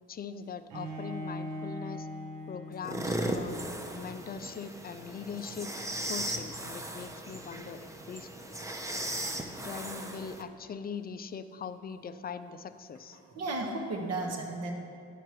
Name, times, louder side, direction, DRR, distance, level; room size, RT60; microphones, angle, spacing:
voice 1, 0.1-2.1 2.5-3.6 3.9-5.7 6.1-8.3 9.6-13.2, left 6 dB, 30° left, 11 dB, 0.4 m, -41 dB
Bowed string instrument, 0.7-3.7, left 1 dB, 80° right, 0.9 m, -40 dB
sound 1, 2.8-10.4, right 1 dB, 10° right, 0.6 m, -37 dB
voice 2, 13.1-14.7, right 2 dB, 55° right, 2 dB, 1.1 m, -34 dB
9.9 x 4.6 x 4.7 m, 2.4 s
cardioid pair, 90°, 30 cm